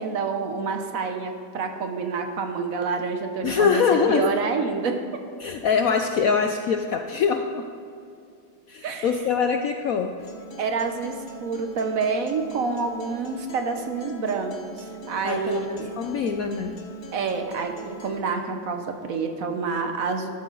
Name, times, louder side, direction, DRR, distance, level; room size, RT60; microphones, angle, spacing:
voice 1, 0.0-3.8 4.1-5.0 8.8-9.1 10.6-15.9 17.1-20.3, right 5 dB, 55° right, 5 dB, 1.1 m, -28 dB
voice 2, 3.4-4.3 5.4-7.6 8.7-10.2 15.2-16.8, left 6 dB, 80° left, 5 dB, 0.7 m, -23 dB
Acoustic guitar, 10.2-18.2, right 1 dB, 35° left, 0.9 m, -42 dB
13.0 x 12.0 x 3.9 m, 2.5 s
omnidirectional pair, 2.1 m